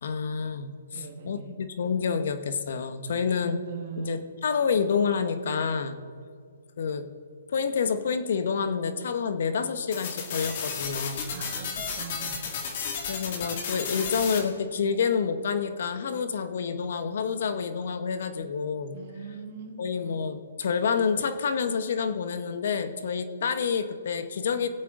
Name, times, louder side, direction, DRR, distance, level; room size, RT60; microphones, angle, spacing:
voice 1, 0.0-3.6 4.0-6.0 6.8-7.1 7.5-11.3 13.1-19.0 19.8-24.7, left 6 dB, 60° left, 9 dB, 1.2 m, -28 dB
voice 2, 0.9-1.6 3.1-4.3 11.3-12.5 18.9-20.0, right 7 dB, 45° right, 4 dB, 1.9 m, -41 dB
sound 1, 9.9-14.4, left 6 dB, 45° left, 2.2 m, -33 dB
22.0 x 8.3 x 3.9 m, 2.1 s
hypercardioid pair, 155°, 0 cm